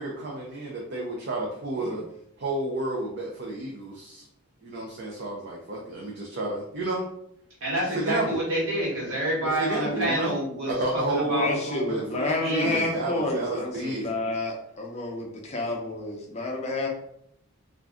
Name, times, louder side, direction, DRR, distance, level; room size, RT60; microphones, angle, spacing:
voice 1, 0.0-2.0 2.4-4.2 4.6-7.0 8.1-8.4 9.4-10.3 10.8-12.3 12.6-14.1, right 2 dB, 50° right, -2 dB, 0.5 m, -31 dB
voice 2, 7.6-11.6 12.4-12.9, right 1 dB, 70° right, -5 dB, 1.3 m, -28 dB
voice 3, 11.3-16.9, left 2 dB, 30° left, -1 dB, 0.5 m, -29 dB
2.5 x 2.2 x 3.5 m, 0.72 s
head